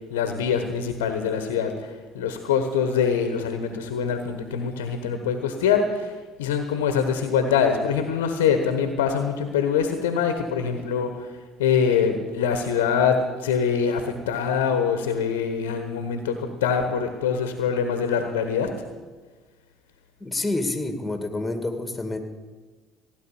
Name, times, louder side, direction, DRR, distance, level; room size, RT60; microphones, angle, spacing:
voice 1, 0.1-11.3 11.6-18.7, left 6 dB, 80° left, 7 dB, 1.2 m, -24 dB
voice 2, 20.2-22.2, left 2 dB, 15° left, 7 dB, 2.3 m, -28 dB
16.5 x 9.4 x 7.0 m, 1.3 s
hypercardioid pair, 55°, 0 cm